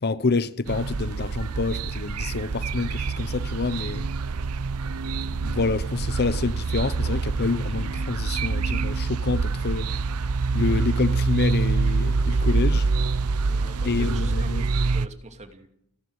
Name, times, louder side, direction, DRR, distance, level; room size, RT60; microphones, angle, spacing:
voice 1, 0.0-4.1 5.3-9.9 10.5-12.9 13.8-14.6, left 3 dB, 45° left, 0.7 m, -27 dB
sound 1, 0.7-15.1, right 4 dB, 90° right, 0.7 m, -26 dB
voice 2, 13.4-15.7, right 2 dB, 30° right, 2.7 m, -44 dB
29.0 x 11.5 x 8.1 m
head